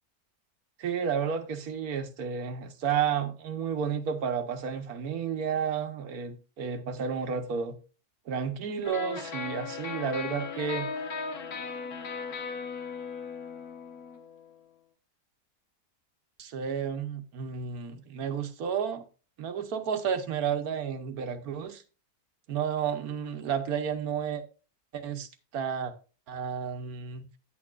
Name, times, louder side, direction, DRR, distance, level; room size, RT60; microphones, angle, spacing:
voice 1, 0.8-7.8 8.3-10.9 16.4-19.0 19.4-21.8 22.5-24.4 24.9-25.3 25.5-25.9 26.3-27.3, right 7 dB, 75° right, 1.4 m, -31 dB
sound 1, 8.8-14.6, left 5 dB, 75° left, 1.7 m, -37 dB
9.9 x 8.6 x 2.4 m
omnidirectional pair, 1.6 m